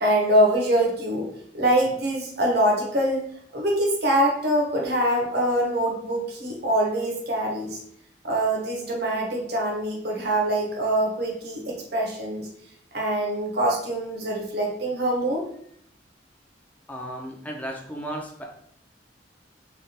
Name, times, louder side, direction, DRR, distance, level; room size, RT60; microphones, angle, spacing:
voice 1, 0.0-3.2 3.5-7.8 8.2-12.5 12.9-15.5, right 1 dB, 60° right, -1 dB, 0.9 m, -24 dB
voice 2, 16.9-18.4, right 1 dB, 10° left, -1 dB, 0.5 m, -34 dB
3.3 x 2.3 x 2.7 m, 0.65 s
head